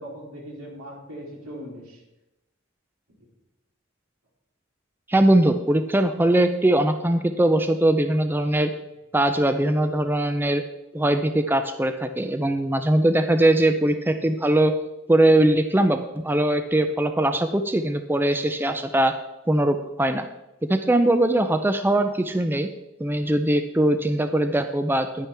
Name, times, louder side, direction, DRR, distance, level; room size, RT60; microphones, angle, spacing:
voice 1, 0.0-2.0 3.2-3.3, equal, 90° right, -3 dB, 3.5 m, -39 dB
voice 2, 5.1-8.7 9.1-10.6 10.9-14.7 15.1-19.1 19.5-20.3 20.7-22.7 23.0-25.3, right 1 dB, 10° right, 8 dB, 0.4 m, -21 dB
10.0 x 10.0 x 3.5 m, 0.97 s
head